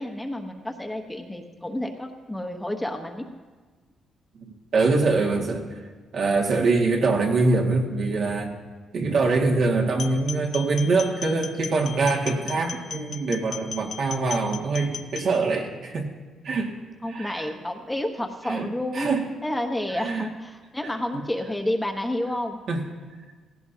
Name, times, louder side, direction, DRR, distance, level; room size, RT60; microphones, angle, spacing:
voice 1, 0.0-3.3 17.0-19.1 19.4-22.6, left 1 dB, 10° left, 4 dB, 1.1 m, -30 dB
voice 2, 4.7-5.7 6.1-8.5 8.9-16.1 16.4-16.8 17.1-17.5 18.5-18.7 18.9-19.2 19.9-20.3 20.8-20.9 22.7-22.8, right 3 dB, 65° right, 0 dB, 2.0 m, -24 dB
sound 1, 9.9-15.3, left 6 dB, 55° left, 0.7 m, -37 dB
17.0 x 16.0 x 2.8 m, 1.4 s
cardioid pair, 90°, 0 cm